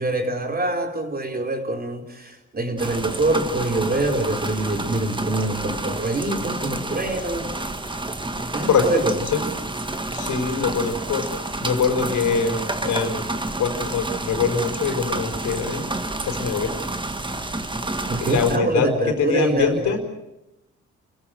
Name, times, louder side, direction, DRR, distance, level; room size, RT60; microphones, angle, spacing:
voice 1, 0.0-7.6 8.5-9.1 18.1-20.0, right 2 dB, 30° right, 4 dB, 4.4 m, -25 dB
sound 1, 2.8-18.6, right 2 dB, 15° right, 1.8 m, -29 dB
voice 2, 8.6-9.4 10.1-11.3 11.6-13.2 13.6-16.7 18.2-20.0, left 5 dB, 85° left, 4 dB, 4.7 m, -23 dB
30.0 x 15.5 x 7.9 m, 0.92 s
cardioid pair, 90°, 29 cm